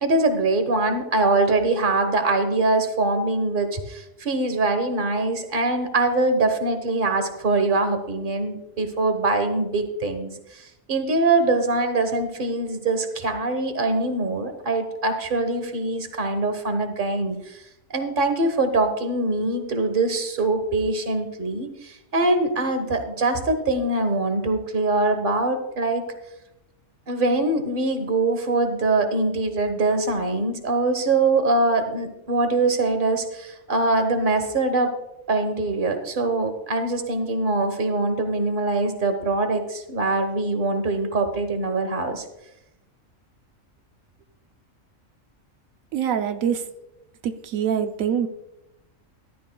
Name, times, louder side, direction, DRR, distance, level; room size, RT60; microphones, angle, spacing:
voice 1, 0.0-17.6 17.9-26.0 27.1-34.9 35.3-42.2, right 2 dB, 40° right, 7 dB, 1.3 m, -23 dB
voice 2, 45.9-46.6 47.2-48.3, right 8 dB, 85° right, 8 dB, 1.1 m, -24 dB
14.5 x 12.0 x 2.3 m, 0.90 s
omnidirectional pair, 1.4 m